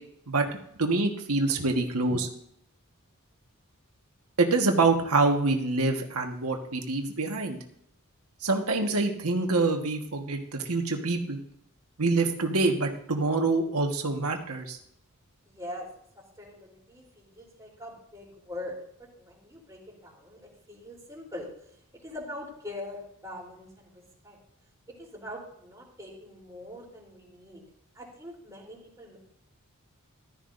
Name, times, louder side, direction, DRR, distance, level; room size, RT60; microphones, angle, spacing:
voice 1, 0.8-2.3 4.4-7.6 8.4-11.4 12.0-14.8, right 3 dB, 80° right, 3 dB, 1.5 m, -26 dB
voice 2, 15.5-15.9 16.4-18.8 19.1-21.5 22.0-24.4 25.0-27.7 27.9-29.2, left 1 dB, 15° right, -3 dB, 3.6 m, -43 dB
14.5 x 12.5 x 2.6 m, 0.73 s
head